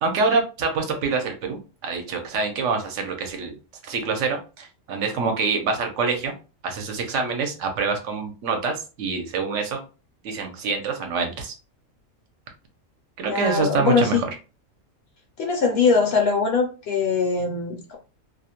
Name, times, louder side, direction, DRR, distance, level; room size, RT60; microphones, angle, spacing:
voice 1, 0.0-3.5 3.8-6.3 6.6-9.8 10.2-11.5 13.2-14.3, right 4 dB, 70° right, 4 dB, 0.9 m, -26 dB
voice 2, 13.2-14.2 15.4-18.0, left 5 dB, 65° left, 2 dB, 0.7 m, -22 dB
2.4 x 2.0 x 2.8 m, 0.32 s
omnidirectional pair, 1.4 m